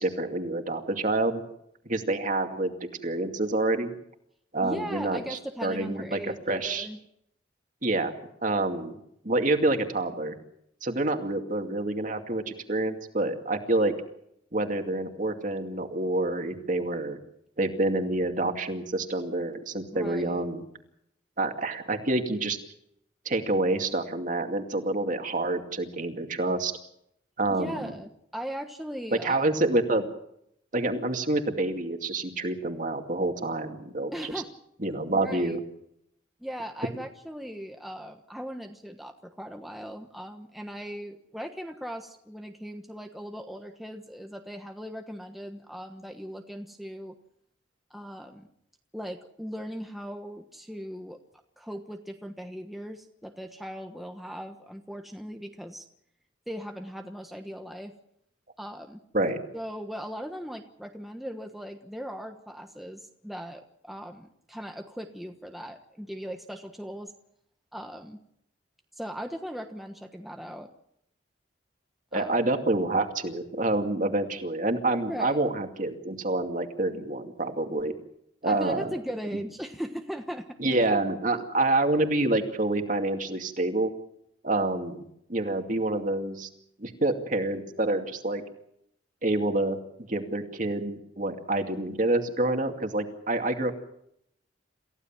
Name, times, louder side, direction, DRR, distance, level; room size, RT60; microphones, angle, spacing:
voice 1, 0.0-1.4 1.9-2.7 3.0-3.9 4.5-6.9 7.8-8.1 8.4-9.0 9.2-10.3 10.8-13.9 14.5-17.2 17.6-20.6 21.4-22.6 23.3-26.7 27.4-27.9 29.1-30.1 30.7-34.3 34.8-35.6 59.1-59.4 72.1-77.9 78.4-78.9 80.6-83.9 84.4-85.0 85.3-86.5 86.8-88.4 89.2-89.8 90.1-93.7, right 2 dB, 40° right, 5 dB, 2.4 m, -27 dB
voice 2, 4.6-6.3 6.6-7.0 19.9-20.5 27.6-29.5 34.1-34.5 35.1-35.6 36.4-47.1 47.9-48.5 48.9-51.2 51.6-55.8 56.5-57.9 58.6-59.0 59.5-67.1 67.7-68.2 68.9-70.7 72.1-72.4 75.1-75.4 78.4-80.6, equal, ahead, 3 dB, 1.2 m, -38 dB
28.0 x 15.5 x 7.4 m, 0.75 s
head